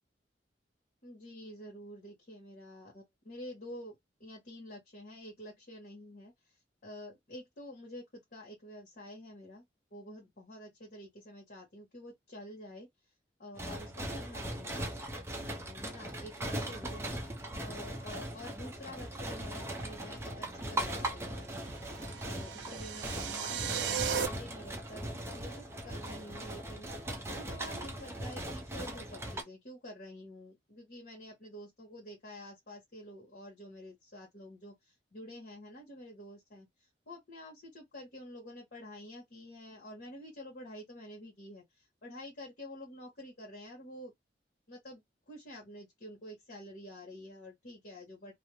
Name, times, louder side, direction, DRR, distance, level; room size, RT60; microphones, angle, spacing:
voice 1, 1.0-6.3 6.8-9.6 9.9-12.9 13.4-15.0 15.7-17.2 17.6-21.6 22.2-26.9 27.3-36.7 37.1-44.1 44.7-48.3, left 1 dB, 55° left, 1.1 m, -48 dB
sound 1, 13.6-29.4, right 1 dB, 15° right, 0.6 m, -39 dB
sound 2, 21.7-24.3, right 8 dB, 80° right, 0.5 m, -36 dB
2.5 x 2.0 x 3.1 m
head